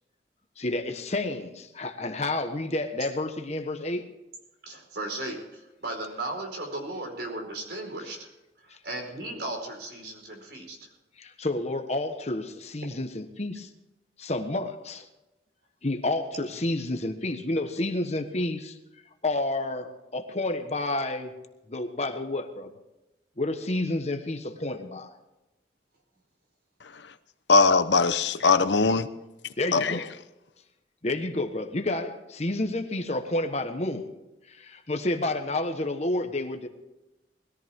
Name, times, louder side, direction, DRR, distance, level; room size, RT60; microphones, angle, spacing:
voice 1, 0.6-4.1 11.2-13.7 14.2-15.1 15.8-18.8 19.2-21.3 21.7-22.7 23.4-25.2 29.6-30.1 31.0-34.1 34.5-36.7, left 2 dB, 40° left, 1.3 m, -30 dB
voice 2, 4.6-8.3 8.8-10.8, right 2 dB, 65° right, 4.7 m, -36 dB
voice 3, 26.8-27.1 27.5-29.1 29.7-30.0, left 4 dB, 85° left, 0.9 m, -21 dB
20.5 x 14.0 x 3.7 m
head